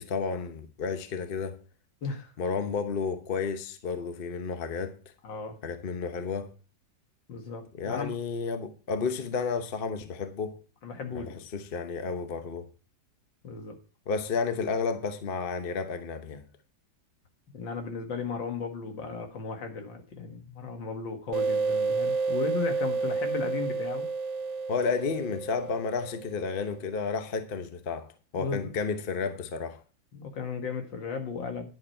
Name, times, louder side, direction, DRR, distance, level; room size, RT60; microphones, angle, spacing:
voice 1, 0.0-1.6 2.4-5.0 5.6-6.5 7.7-10.6 11.1-12.7 14.1-16.5 24.7-29.8, left 5 dB, 40° left, 0.9 m, -32 dB
voice 2, 2.0-2.3 5.2-5.6 7.3-8.1 10.8-11.4 13.4-13.8 17.5-24.1 28.4-28.7 30.1-31.7, left 5 dB, 75° left, 2.3 m, -35 dB
sound 1, 21.3-26.6, right 4 dB, 50° right, 0.9 m, -30 dB
10.5 x 7.8 x 4.4 m
omnidirectional pair, 2.1 m